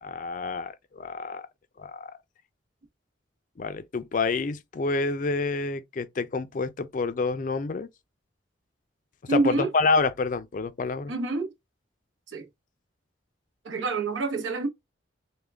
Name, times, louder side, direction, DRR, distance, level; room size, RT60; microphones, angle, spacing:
voice 1, 0.0-1.4 1.8-2.1 3.6-7.9 9.3-11.1, left 4 dB, 40° left, 0.4 m, -28 dB
voice 2, 9.3-9.7 11.1-11.5 12.3-12.5 13.6-14.7, right 3 dB, 80° right, 0.8 m, -27 dB
3.6 x 2.2 x 3.3 m
head